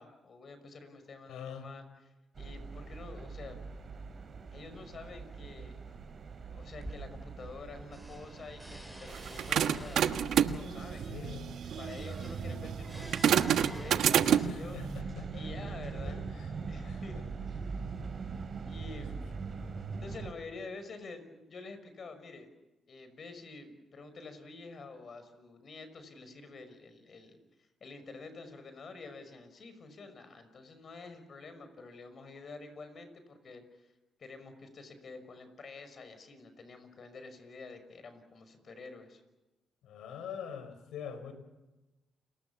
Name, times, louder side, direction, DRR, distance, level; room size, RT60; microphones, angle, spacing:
voice 1, 0.0-3.7 4.5-6.0 6.5-10.2 10.5-11.4 11.8-14.8 15.3-16.2 16.7-17.2 18.6-19.2 20.0-22.5 22.9-27.4 27.8-33.9 34.2-39.2, left 3 dB, 50° left, 9 dB, 5.7 m, -48 dB
voice 2, 1.3-1.7 11.1-11.5 14.4-15.5 15.8-16.5 16.8-17.2 18.9-19.0 39.8-41.3, left 7 dB, 80° left, 10 dB, 4.4 m, -44 dB
sound 1, 2.4-20.3, right 5 dB, 45° right, 3.9 m, -42 dB
sound 2, 6.7-7.6 7.9-14.7 15.5-16.1, right 1 dB, ahead, 7.1 m, -49 dB
sound 3, 9.1-14.7, right 9 dB, 75° right, 1.2 m, -29 dB
29.5 x 21.0 x 7.2 m, 1.1 s
cardioid pair, 75°, 0 cm